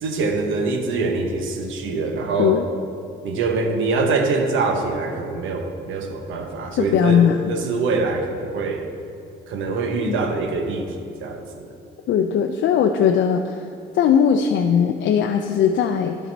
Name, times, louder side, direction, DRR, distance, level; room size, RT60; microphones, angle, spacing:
voice 1, 0.0-2.6 3.2-8.8 9.5-11.0 11.2-11.7, right 3 dB, 80° right, 4 dB, 1.0 m, -24 dB
voice 2, 6.8-7.4 10.1-10.2 12.1-13.7 13.9-16.2, left 8 dB, 70° left, 5 dB, 0.5 m, -19 dB
10.5 x 5.9 x 4.1 m, 2.5 s
cardioid pair, 90°, 20 cm